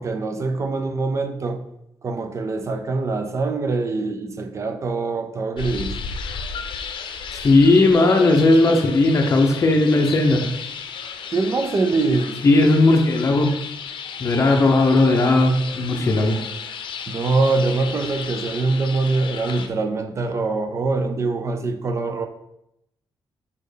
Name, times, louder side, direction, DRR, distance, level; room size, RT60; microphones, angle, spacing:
voice 1, 0.0-1.6 2.0-6.0 11.3-12.4 17.1-22.3, right 3 dB, 35° right, 0.6 m, -23 dB
sound 1, 5.6-19.7, left 6 dB, 70° left, 0.6 m, -34 dB
voice 2, 7.3-10.5 12.4-13.5 14.2-16.4, left 2 dB, 35° left, 0.7 m, -16 dB
5.4 x 4.3 x 5.0 m
wide cardioid pair, 155°, 9 cm